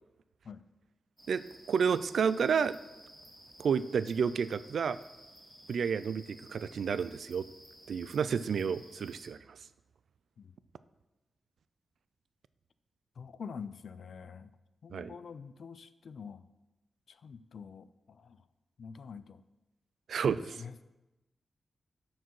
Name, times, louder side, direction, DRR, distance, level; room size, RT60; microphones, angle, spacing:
sound 1, 1.2-9.3, right 1 dB, 15° right, 2.1 m, -55 dB
voice 1, 1.3-2.8 3.6-5.0 5.7-7.4 7.9-9.4 14.9-15.1 20.1-20.6, right 6 dB, 80° right, 15 dB, 0.3 m, -30 dB
voice 2, 13.2-14.5 14.8-16.4 17.1-18.4 18.8-19.4 20.6-20.8, left 6 dB, 70° left, 14 dB, 0.4 m, -46 dB
12.5 x 4.6 x 4.6 m, 1.0 s
wide cardioid pair, 110°, 0 cm